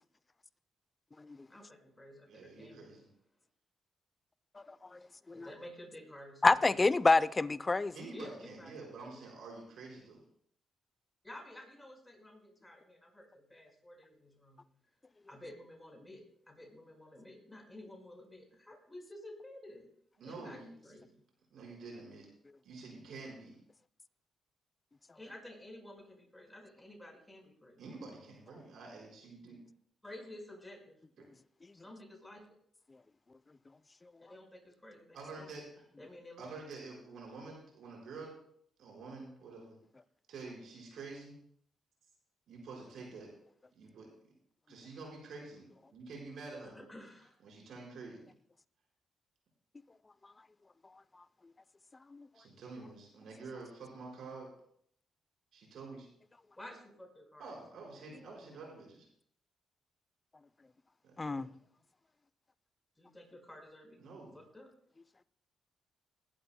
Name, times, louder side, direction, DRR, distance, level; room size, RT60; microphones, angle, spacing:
voice 1, 1.5-2.9 5.0-5.1 5.3-6.6 8.1-9.2 11.2-14.7 15.3-19.9 20.2-20.6 20.8-21.2 25.1-27.8 30.0-31.0 31.7-32.5 34.2-35.5 36.0-36.5 46.9-47.3 56.6-57.8 63.0-64.0 64.3-64.7, left 1 dB, 15° left, 4.8 m, -52 dB
voice 2, 2.3-3.1 7.9-10.2 20.2-21.0 21.5-22.2 22.6-23.6 27.8-29.6 35.1-35.6 36.4-38.3 38.8-39.8 40.3-41.4 42.5-43.3 43.7-44.1 44.7-46.8 47.4-48.3 52.3-54.5 55.5-56.1 57.4-59.1 61.0-61.5 64.0-64.4, right 3 dB, 75° right, 4.8 m, -48 dB
voice 3, 6.4-7.9 52.1-52.2 61.2-61.5, left 3 dB, 30° left, 0.6 m, -27 dB
21.0 x 11.5 x 2.2 m
supercardioid pair, 60°, 0 cm